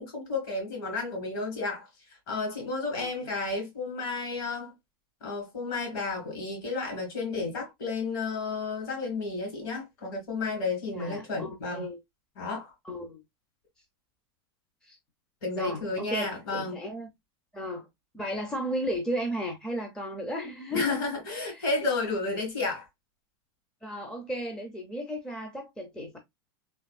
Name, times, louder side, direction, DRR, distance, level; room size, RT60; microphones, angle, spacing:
voice 1, 0.0-1.9 2.3-4.7 5.2-11.9 12.4-12.7 15.4-16.8 20.7-22.9, left 3 dB, 55° left, 2.3 m, -32 dB
voice 2, 10.9-12.0 12.8-13.2 14.8-15.0 15.5-17.1 17.5-17.9 18.1-21.1 21.5-21.6 23.8-26.2, equal, 5° left, 0.5 m, -34 dB
3.4 x 2.6 x 2.2 m
supercardioid pair, 155°, 14 cm